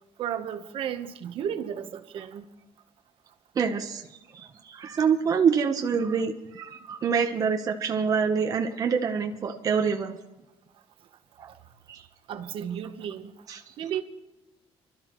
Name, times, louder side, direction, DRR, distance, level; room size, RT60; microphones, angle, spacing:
voice 1, 0.2-2.4 12.3-13.3 13.8-14.0, right 9 dB, 55° right, 1.1 m, -33 dB
voice 2, 3.5-10.1 11.4-11.5 11.9-12.0 13.5-13.7, right 6 dB, 35° right, 0.9 m, -26 dB
27.5 x 13.0 x 3.1 m
cardioid pair, 175°, 11 cm